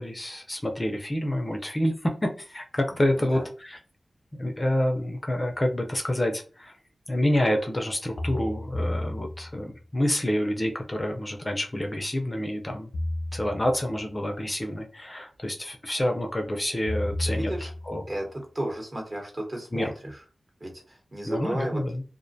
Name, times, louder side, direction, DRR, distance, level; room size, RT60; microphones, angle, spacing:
voice 1, 0.0-3.8 4.3-6.7 7.1-12.9 13.3-18.0 19.7-19.9 21.2-22.0, left 1 dB, 25° left, 3 dB, 0.4 m, -28 dB
voice 2, 2.9-3.4 17.3-17.7 18.1-20.2 20.6-21.8, right 1 dB, 40° right, 1 dB, 0.9 m, -34 dB
sound 1, 5.6-5.7 8.2-9.8 12.9-14.0 16.9-18.2, left 1 dB, 85° left, 0.5 m, -32 dB
2.5 x 2.1 x 2.6 m, 0.36 s
wide cardioid pair, 90°, 0 cm